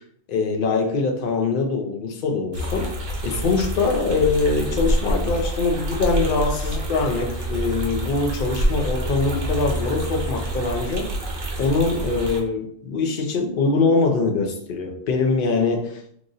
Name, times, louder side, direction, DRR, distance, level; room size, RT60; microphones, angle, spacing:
voice 1, 0.3-2.9 3.2-11.1 11.6-16.1, left 3 dB, 55° left, 2 dB, 0.7 m, -23 dB
sound 1, 2.5-12.4, right 1 dB, 65° right, 1.1 m, -27 dB
3.0 x 2.5 x 3.9 m, 0.67 s
omnidirectional pair, 1.4 m